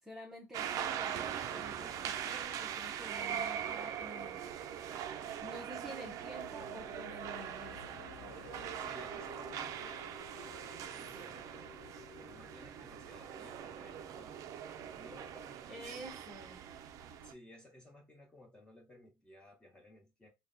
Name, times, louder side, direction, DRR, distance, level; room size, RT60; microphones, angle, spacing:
voice 1, 0.0-4.5 5.4-8.0 15.7-16.6, equal, 5° right, 0.7 m, -50 dB
sound 1, 0.5-17.3, right 9 dB, 55° right, 0.4 m, -42 dB
sound 2, 3.9-14.1, left 11 dB, 80° left, 0.4 m, -57 dB
voice 2, 8.3-11.7 12.2-16.2 17.1-20.3, left 1 dB, 15° left, 1.3 m, -58 dB
3.9 x 2.2 x 2.6 m
cardioid pair, 125°, 7 cm